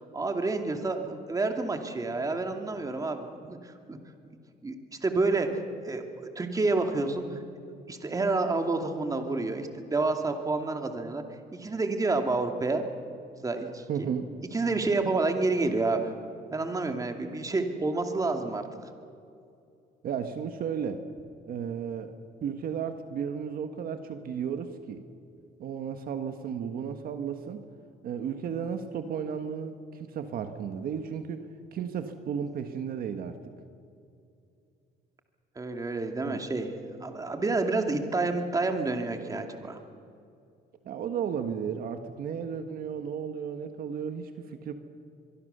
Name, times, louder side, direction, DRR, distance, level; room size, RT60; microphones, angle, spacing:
voice 1, 0.1-4.0 4.6-4.7 5.0-7.4 7.9-11.2 11.5-12.9 13.4-14.1 14.5-16.1 16.5-18.7 35.6-36.7 37.0-39.8, right 3 dB, 20° right, 5 dB, 2.3 m, -29 dB
voice 2, 13.9-14.3 20.0-21.0 21.5-22.1 22.4-25.0 25.6-27.6 28.0-31.5 31.7-33.4 36.2-36.4 40.8-44.7, right 7 dB, 60° right, 7 dB, 1.6 m, -34 dB
24.0 x 23.0 x 6.8 m, 2.5 s
cardioid pair, 110°, 17 cm